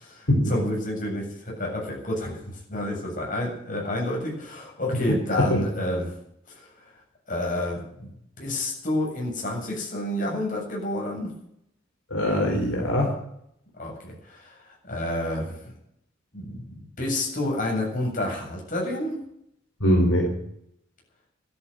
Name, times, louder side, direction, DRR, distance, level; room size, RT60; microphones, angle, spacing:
voice 1, 0.0-6.1 6.5-6.7 7.3-8.1 8.4-11.3 13.8-15.7 16.3-19.2, left 1 dB, 40° left, -1 dB, 7.7 m, -29 dB
voice 2, 12.1-13.2 19.8-20.3, equal, 75° left, 0 dB, 4.2 m, -22 dB
13.0 x 11.5 x 9.1 m, 0.73 s
head